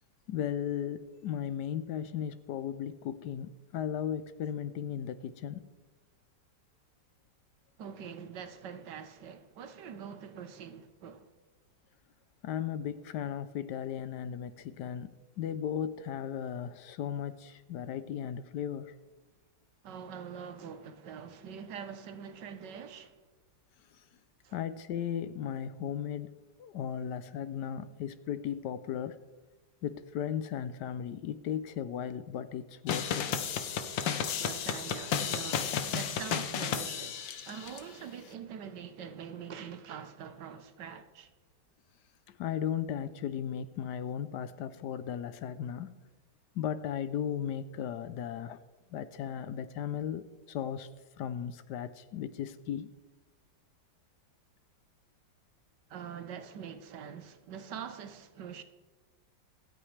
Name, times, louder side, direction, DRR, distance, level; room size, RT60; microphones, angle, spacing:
voice 1, 0.3-5.6 12.4-15.1 15.4-18.9 23.9-24.0 24.5-26.3 26.6-29.2 29.8-33.3 42.3-46.0 46.5-48.6 48.9-50.9 51.2-52.9, left 9 dB, 75° left, 1.2 m, -36 dB
voice 2, 7.8-11.3 19.8-23.2 24.4-24.6 34.4-41.3 55.9-58.6, right 7 dB, 70° right, 1.5 m, -44 dB
sound 1, 32.9-37.8, left 7 dB, 90° left, 1.6 m, -33 dB
25.5 x 8.8 x 3.3 m
omnidirectional pair, 2.0 m